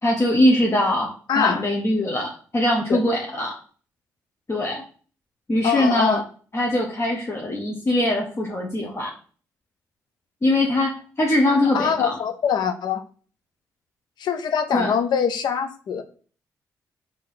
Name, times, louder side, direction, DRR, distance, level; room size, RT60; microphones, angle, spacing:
voice 1, 0.0-3.5 4.5-4.8 5.5-6.2 6.5-9.1 10.4-12.2 14.7-14.9, left 1 dB, 35° left, -1 dB, 1.0 m, -22 dB
voice 2, 1.3-1.6 2.9-3.0 5.6-6.2 11.7-13.0 14.2-16.0, left 7 dB, 65° left, 9 dB, 0.6 m, -23 dB
3.8 x 2.8 x 4.8 m, 0.41 s
hypercardioid pair, 40°, 8 cm